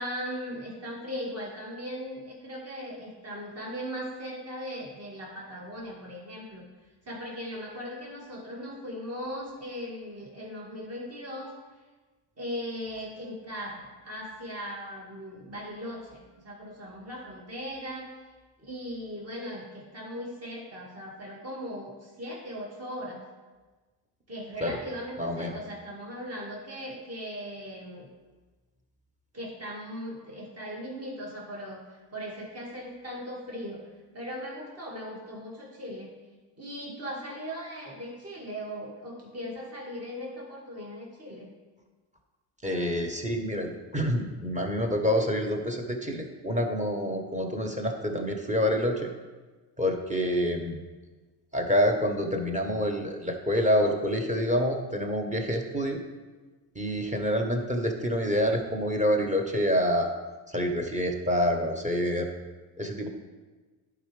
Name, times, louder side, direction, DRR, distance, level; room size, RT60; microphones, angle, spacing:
voice 1, 0.0-6.7 7.1-11.5 12.4-18.1 18.6-23.2 24.3-28.1 29.3-33.8 34.1-36.1 36.6-41.5, equal, 30° right, -3 dB, 2.1 m, -38 dB
voice 2, 25.2-25.6 42.6-49.1 49.8-50.8 51.5-56.0 56.7-60.1 60.5-62.3 62.8-63.1, equal, 15° right, 3 dB, 1.2 m, -27 dB
11.0 x 4.9 x 3.4 m, 1.3 s
hypercardioid pair, 65°, 50 cm